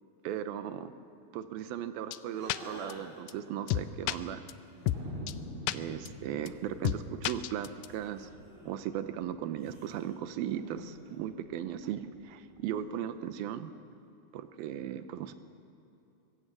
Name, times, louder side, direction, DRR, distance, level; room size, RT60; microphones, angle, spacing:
voice 1, 0.2-0.9 1.3-4.4 5.7-8.3 8.6-13.7 14.3-15.3, right 10 dB, 80° right, 11 dB, 2.6 m, -37 dB
sound 1, 2.1-2.2 2.5-2.6 2.9-3.0 3.3-3.4 3.7-4.1 4.5-4.6 4.9-5.0 5.3-5.4 5.7-5.8 6.1-6.2 6.5-6.6 6.8-7.0 7.2-7.9, left 14 dB, 90° left, 1.8 m, -29 dB
sound 2, 2.3-3.3 4.7-5.3 6.6-7.3 7.8-8.8 9.6-11.3, equal, 15° right, 5.4 m, -51 dB
Thunder, 4.9-9.8 10.0-10.1 10.3-10.9 11.4-12.6, equal, 65° right, 4.6 m, -46 dB
24.0 x 15.0 x 7.5 m, 2.9 s
omnidirectional pair, 4.4 m